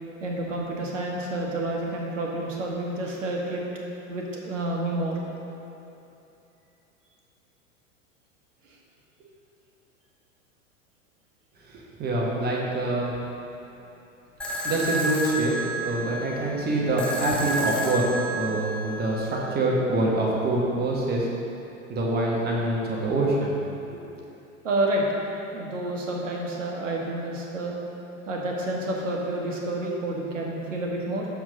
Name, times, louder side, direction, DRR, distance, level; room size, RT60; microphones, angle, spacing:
voice 1, 0.2-3.6 4.1-5.2 24.6-25.0 25.5-27.7 28.3-31.3, right 1 dB, 65° right, -2 dB, 1.4 m, -29 dB
voice 2, 11.7-13.1 14.6-18.0 18.3-21.3 21.9-23.5 23.9-24.0, right 2 dB, 25° right, -3 dB, 1.4 m, -25 dB
sound 1, 14.4-19.4, right 1 dB, ahead, 0.8 m, -31 dB
6.3 x 6.2 x 5.1 m, 2.9 s
figure-of-eight pair, 85°, 40 cm